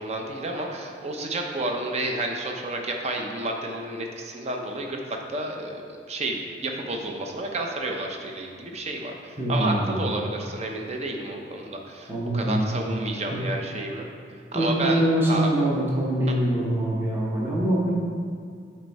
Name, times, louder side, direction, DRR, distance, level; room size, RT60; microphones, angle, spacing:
voice 1, 0.0-14.1 14.5-15.6, right 2 dB, 40° right, 2 dB, 0.7 m, -31 dB
voice 2, 9.4-10.1 12.1-12.6 13.3-13.4 14.5-17.9, right 1 dB, 15° right, -5 dB, 0.9 m, -24 dB
8.0 x 4.6 x 4.1 m, 2.2 s
head